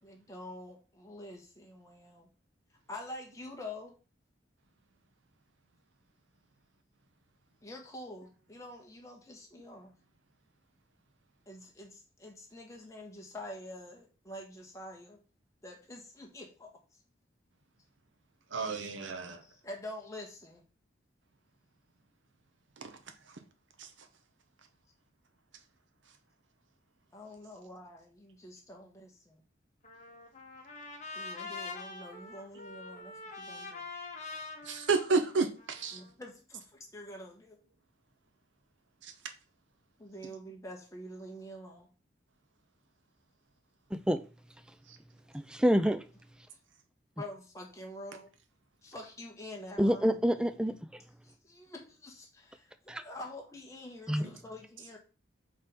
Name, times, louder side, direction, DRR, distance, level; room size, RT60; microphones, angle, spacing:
voice 1, 0.0-2.3 2.9-3.9 7.6-9.9 11.5-15.2 15.6-16.7 19.4-20.6 27.1-29.4 31.1-33.8 35.9-37.6 40.0-41.9 46.5-46.6 47.2-48.3 48.8-50.2 51.2-55.0, left 1 dB, 15° left, 1.4 m, -46 dB
voice 2, 18.5-19.4 22.8-22.9 23.8-23.9 34.6-36.0 39.0-39.1, right 4 dB, 85° right, 0.9 m, -31 dB
Trumpet, 29.8-36.1, left 3 dB, 40° left, 1.2 m, -44 dB
voice 3, 45.5-46.0 49.8-50.8 52.9-53.0 54.1-54.3, equal, 5° right, 0.3 m, -27 dB
5.5 x 3.4 x 5.3 m
head